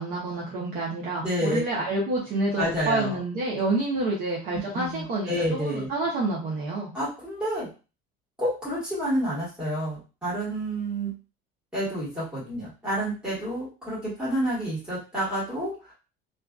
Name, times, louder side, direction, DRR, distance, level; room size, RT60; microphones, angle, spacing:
voice 1, 0.0-6.9, right 2 dB, 45° right, -4 dB, 0.7 m, -28 dB
voice 2, 1.1-1.6 2.6-3.2 4.7-5.9 6.9-7.7 8.4-11.1 11.7-15.7, equal, 5° right, -10 dB, 1.4 m, -29 dB
2.5 x 2.3 x 2.3 m, 0.32 s
cardioid pair, 175°, 20 cm